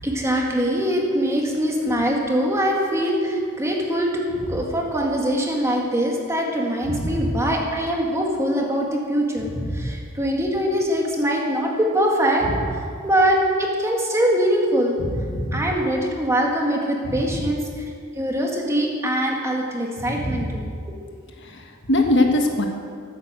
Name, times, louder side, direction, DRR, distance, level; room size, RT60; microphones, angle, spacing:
voice 1, 0.0-12.5 12.7-15.0 15.5-17.8 18.2-20.7, equal, 15° right, -1 dB, 1.9 m, -23 dB
voice 2, 6.9-7.3 9.5-9.9 15.1-15.6 17.1-17.2 20.1-20.4 21.4-22.7, left 1 dB, 55° left, 3 dB, 1.5 m, -23 dB
14.0 x 9.0 x 7.6 m, 2.2 s
head